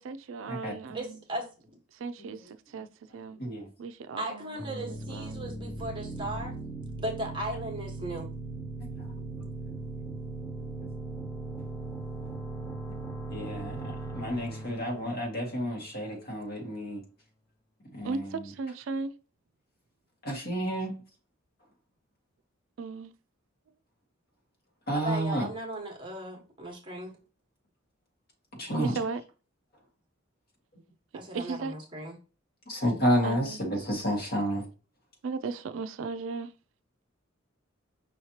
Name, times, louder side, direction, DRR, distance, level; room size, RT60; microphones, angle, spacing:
voice 1, 0.0-1.2 1.9-2.9 3.1-3.4 3.8-5.4 18.0-19.1 22.8-23.1 28.8-29.2 31.3-31.7 33.2-33.6 35.2-36.5, right 4 dB, 70° right, 0.4 m, -36 dB
voice 2, 0.9-1.7 4.2-6.5 7.0-8.3 24.9-27.1 31.1-32.2, right 1 dB, 25° right, 1.2 m, -37 dB
sound 1, 4.6-16.2, right 2 dB, 15° left, 0.6 m, -39 dB
voice 3, 13.3-17.0 17.9-18.4 20.2-20.9 24.9-25.5 28.6-28.9 32.7-34.7, equal, 50° left, 1.8 m, -30 dB
5.6 x 3.1 x 2.8 m
head